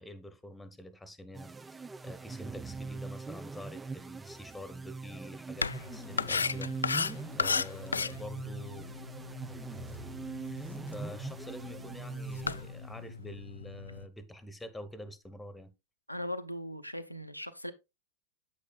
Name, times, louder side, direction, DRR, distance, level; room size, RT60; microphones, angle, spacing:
voice 1, 0.0-8.9 10.5-15.7, left 1 dB, 5° left, 1.1 m, -47 dB
sound 1, 1.3-13.1, right 4 dB, 10° right, 0.4 m, -42 dB
sound 2, 5.6-14.1, left 5 dB, 75° left, 0.3 m, -36 dB
voice 2, 16.1-17.7, left 1 dB, 90° left, 0.7 m, -39 dB
8.6 x 8.3 x 2.3 m
figure-of-eight pair, 90°, 0 cm